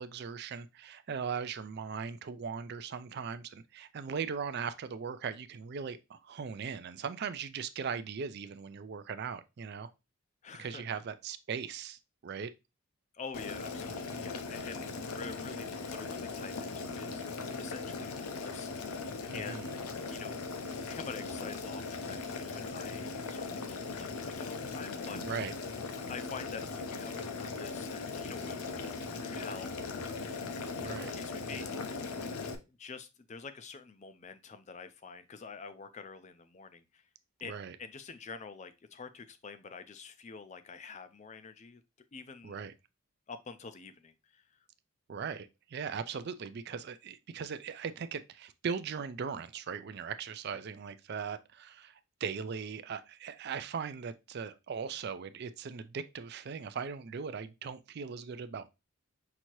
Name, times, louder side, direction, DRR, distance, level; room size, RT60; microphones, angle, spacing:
voice 1, 0.0-9.9 10.6-12.5 19.3-19.7 25.2-25.5 30.8-31.1 37.4-37.8 42.4-42.7 45.1-58.7, right 6 dB, 50° right, 0.3 m, -39 dB
voice 2, 10.4-10.8 13.1-18.9 19.3-19.7 20.1-25.4 25.8-31.9 32.7-37.1 37.4-37.5 37.8-41.8 42.1-42.6 43.3-44.6, left 5 dB, 30° left, 0.4 m, -47 dB
Boiling, 13.3-32.5, left 4 dB, 85° left, 0.6 m, -39 dB
5.8 x 2.7 x 3.0 m
head